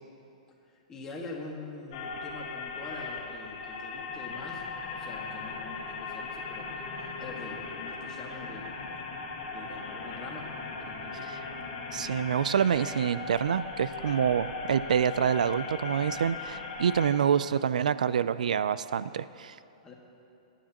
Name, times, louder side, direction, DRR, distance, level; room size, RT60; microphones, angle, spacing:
voice 1, 0.7-4.6 4.9-8.7 9.5-10.5 10.8-11.3 19.8-19.9, left 3 dB, 15° left, -1 dB, 1.6 m, -44 dB
sound 1, 1.9-17.1, left 4 dB, 45° left, 1.8 m, -38 dB
voice 2, 11.9-19.5, right 8 dB, 90° right, 16 dB, 0.4 m, -27 dB
22.0 x 9.8 x 2.9 m, 2.8 s
hypercardioid pair, 155°, 4 cm